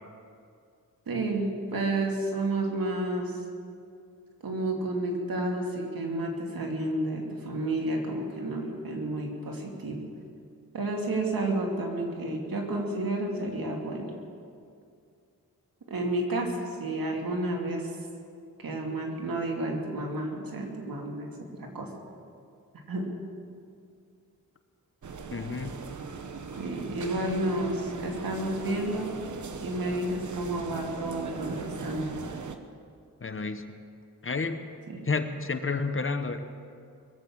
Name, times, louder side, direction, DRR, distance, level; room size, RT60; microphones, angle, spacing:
voice 1, 1.1-3.4 4.4-10.0 10.7-14.1 15.9-17.9 18.6-21.3 21.6-21.9 22.9-23.1 26.6-29.1 29.6-32.1 34.9-35.0, right 1 dB, 70° right, 1 dB, 2.8 m, -31 dB
sound 1, 25.0-32.6, right 5 dB, 55° right, 1.2 m, -39 dB
voice 2, 25.3-25.8 33.2-33.6 34.2-34.6 35.1-36.5, left 4 dB, 35° left, 9 dB, 1.1 m, -30 dB
22.0 x 8.2 x 7.4 m, 2.3 s
cardioid pair, 65°, 36 cm